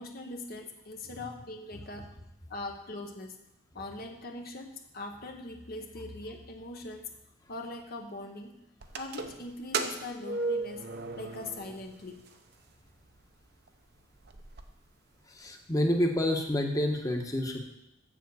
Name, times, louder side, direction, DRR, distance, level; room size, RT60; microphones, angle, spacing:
voice 1, 0.0-2.1 2.5-3.4 3.7-7.1 7.5-8.5 9.0-10.9 11.2-12.3, left 2 dB, 45° left, 3 dB, 0.9 m, -41 dB
old hinged metal door, 8.8-12.0 12.3-12.4 13.2-13.3 13.7-13.8 14.0-14.6, right 3 dB, 50° right, 0.8 m, -35 dB
voice 2, 15.3-17.6, left 1 dB, 15° left, 3 dB, 1.1 m, -28 dB
7.6 x 7.1 x 6.9 m, 0.92 s
head